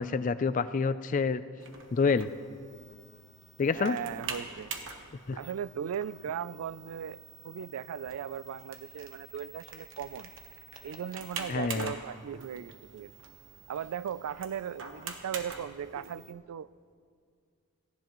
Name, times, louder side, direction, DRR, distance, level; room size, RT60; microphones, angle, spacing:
voice 1, 0.0-1.4 1.9-2.3 3.6-4.0 5.3-5.4 11.5-11.9, left 5 dB, 35° left, 14 dB, 0.3 m, -27 dB
sound 1, 1.6-16.3, right 5 dB, 60° right, 1.1 m, -45 dB
voice 2, 3.7-4.7 5.4-7.2 7.4-10.3 10.8-13.1 13.7-16.7, right 8 dB, 85° right, 18 dB, 0.3 m, -37 dB
17.5 x 15.5 x 3.0 m, 2.2 s
head